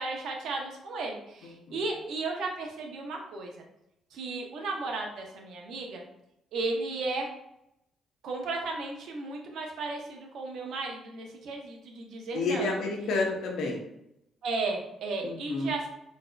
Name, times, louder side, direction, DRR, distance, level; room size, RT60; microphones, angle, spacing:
voice 1, 0.0-3.6 4.1-6.0 6.5-7.3 8.2-12.8 14.4-15.9, right 3 dB, 75° right, 1 dB, 0.7 m, -34 dB
voice 2, 1.4-1.8 12.3-13.8 15.2-15.7, left 3 dB, 80° left, 0 dB, 0.7 m, -30 dB
4.0 x 2.7 x 2.2 m, 0.82 s
cardioid pair, 90°, 0 cm